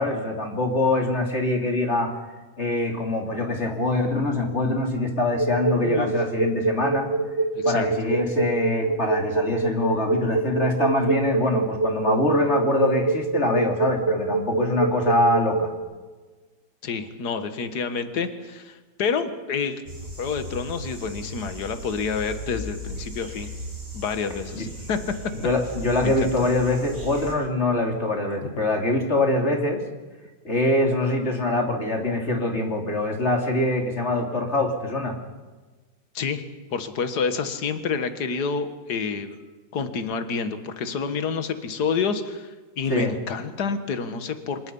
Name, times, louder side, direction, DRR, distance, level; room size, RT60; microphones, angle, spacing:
voice 1, 0.0-2.1 2.6-7.1 7.6-15.7 24.5-24.6 25.4-29.8 30.4-35.2 42.9-43.1, left 2 dB, 35° left, 2 dB, 3.5 m, -24 dB
sound 1, 5.4-15.8, right 4 dB, 15° left, 7.8 m, -24 dB
voice 2, 7.5-7.9 16.8-19.8 20.2-23.5 23.9-25.2 26.0-26.3 36.1-36.4 36.7-39.4 39.7-44.7, left 5 dB, 55° left, 9 dB, 2.1 m, -28 dB
sound 2, 19.9-27.3, equal, 30° right, 5.4 m, -37 dB
27.5 x 22.5 x 5.5 m, 1.3 s
omnidirectional pair, 2.1 m